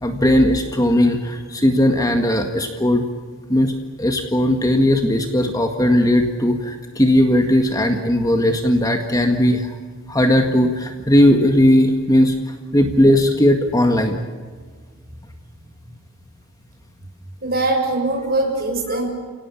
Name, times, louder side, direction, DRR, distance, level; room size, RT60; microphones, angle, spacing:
voice 1, 0.0-3.1 3.5-9.8 10.1-14.2, left 1 dB, 15° left, 5 dB, 1.8 m, -17 dB
voice 2, 17.4-19.1, right 2 dB, 45° right, 3 dB, 6.4 m, -21 dB
30.0 x 18.0 x 8.5 m, 1.5 s
head